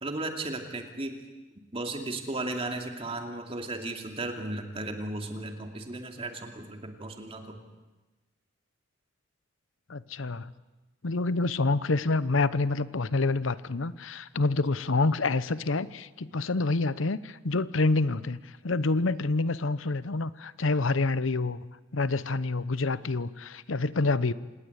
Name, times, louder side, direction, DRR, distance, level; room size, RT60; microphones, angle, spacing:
voice 1, 0.0-1.2 1.7-7.6, right 2 dB, 30° right, 4 dB, 2.7 m, -35 dB
voice 2, 9.9-10.5 11.0-18.4 18.6-21.6 21.9-24.3, left 3 dB, 85° left, 16 dB, 0.9 m, -27 dB
27.0 x 19.5 x 8.2 m, 1.2 s
head